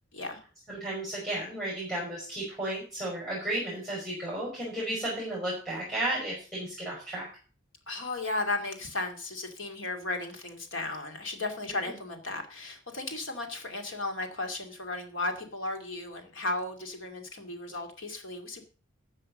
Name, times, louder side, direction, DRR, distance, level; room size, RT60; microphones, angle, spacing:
voice 1, 0.1-0.4 7.9-18.6, left 2 dB, 75° left, 5 dB, 2.5 m, -35 dB
voice 2, 0.7-7.3, right 1 dB, ahead, -5 dB, 5.6 m, -33 dB
13.5 x 7.5 x 5.4 m, 0.37 s
head